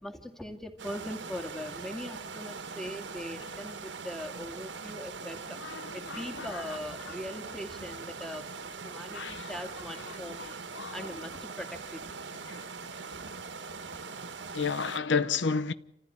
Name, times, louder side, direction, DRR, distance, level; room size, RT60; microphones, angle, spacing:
voice 1, 0.0-5.6 5.9-8.4 8.8-10.4 10.9-12.2 13.2-13.3, equal, ahead, 2.3 m, -41 dB
sound 1, 0.8-15.0, right 4 dB, 75° right, 1.5 m, -42 dB
voice 2, 5.6-6.6 9.1-9.5 10.1-11.1 12.5-12.6 14.5-15.7, left 5 dB, 80° left, 0.9 m, -32 dB
28.5 x 15.0 x 9.9 m
head